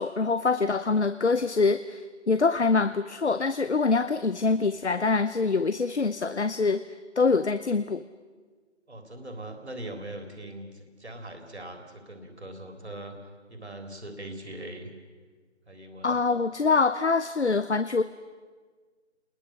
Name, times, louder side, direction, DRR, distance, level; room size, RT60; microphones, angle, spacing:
voice 1, 0.0-6.8 7.2-8.0 16.0-18.0, left 4 dB, 65° left, 13 dB, 0.9 m, -24 dB
voice 2, 8.9-13.2 13.5-14.9 15.7-16.2, right 1 dB, 60° right, 5 dB, 3.6 m, -41 dB
29.5 x 21.0 x 6.4 m, 1.5 s
figure-of-eight pair, 165°, 36 cm